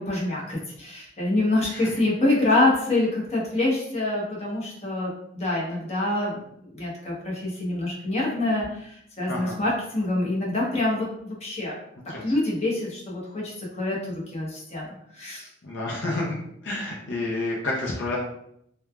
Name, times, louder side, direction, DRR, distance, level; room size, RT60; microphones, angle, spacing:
voice 1, 0.0-6.4 6.7-11.8 12.2-14.0 14.3-14.9 15.1-15.5, left 2 dB, 35° left, -4 dB, 0.9 m, -26 dB
voice 2, 15.6-16.4 16.6-18.2, left 2 dB, 70° left, -3 dB, 0.5 m, -29 dB
3.1 x 2.2 x 2.3 m, 0.72 s
head